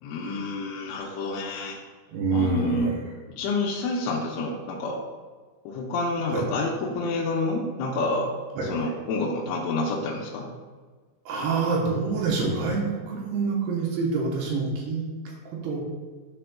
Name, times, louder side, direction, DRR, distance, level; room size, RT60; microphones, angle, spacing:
voice 1, 0.0-1.8 2.3-2.9 3.3-5.0 5.7-8.3 8.7-10.5, left 2 dB, 85° left, -4 dB, 3.1 m, -28 dB
voice 2, 2.1-3.0 6.3-6.4 8.6-8.7 11.3-15.8, right 4 dB, 70° right, -2 dB, 2.7 m, -27 dB
11.5 x 4.3 x 2.3 m, 1.4 s
omnidirectional pair, 5.3 m